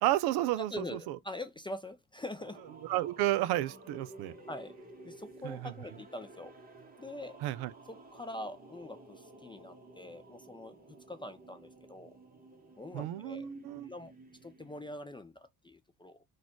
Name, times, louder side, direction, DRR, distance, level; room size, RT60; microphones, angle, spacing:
voice 1, 0.0-1.2 2.8-4.4 5.4-5.7 7.4-7.7 12.9-13.9, right 15 dB, 55° right, 0.5 m, -32 dB
voice 2, 0.7-2.7 4.5-4.7 5.0-6.5 7.0-7.4 7.9-12.2 12.8-14.1 14.4-16.2, left 1 dB, 10° left, 0.4 m, -44 dB
sound 1, 2.4-14.9, right 2 dB, 20° right, 1.2 m, -54 dB
3.9 x 2.5 x 4.4 m
hypercardioid pair, 70°, 47 cm